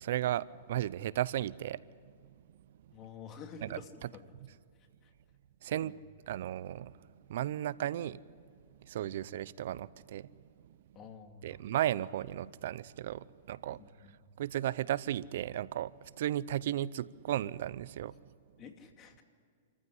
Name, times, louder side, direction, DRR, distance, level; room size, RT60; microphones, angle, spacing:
voice 1, 0.0-1.8 3.6-3.8 5.6-6.0 6.3-7.0 7.3-8.2 8.9-10.3 11.4-13.8 14.4-18.1, right 12 dB, 65° right, 0.5 m, -34 dB
voice 2, 2.9-4.3 5.8-6.0 9.0-9.2 10.9-11.7 13.8-14.2 18.6-19.2, left 6 dB, 30° left, 2.5 m, -50 dB
27.5 x 15.0 x 9.9 m
hypercardioid pair, 125°, 0 cm